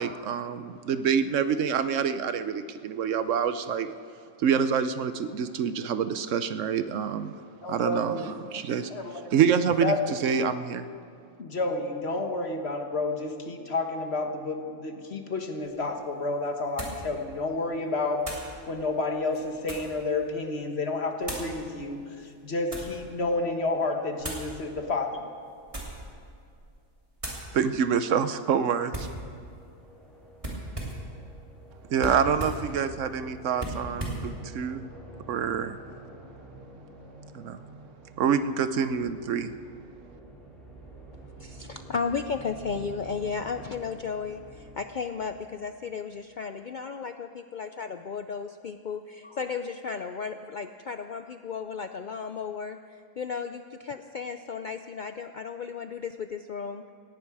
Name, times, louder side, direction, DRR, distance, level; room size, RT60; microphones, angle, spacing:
voice 1, 0.0-3.9 4.4-7.4 7.7-8.9 9.3-10.9 27.5-29.1 31.9-34.9 35.3-35.8 37.3-37.6 38.2-39.5, right 7 dB, 65° right, 11 dB, 1.0 m, -26 dB
voice 2, 7.6-8.3 8.5-8.6 8.9-9.2 9.8-10.0 11.4-18.2 18.7-25.3, left 2 dB, 50° left, 4 dB, 1.5 m, -30 dB
sound 1, 15.6-15.7 16.8-17.1 18.2-18.5 19.2-20.0 21.2-21.5 22.3-23.0 24.2-24.5 25.6-26.1 26.5-26.8 27.2-27.5 28.9-29.2 30.4-31.1 32.0-32.7 33.6-34.3, right 1 dB, 20° right, 2.9 m, -36 dB
sound 2, 29.3-46.2, right 2 dB, ahead, 4.2 m, -49 dB
voice 3, 41.4-56.8, left 5 dB, 75° left, 8 dB, 0.4 m, -34 dB
18.5 x 16.0 x 4.8 m, 2.4 s
omnidirectional pair, 1.5 m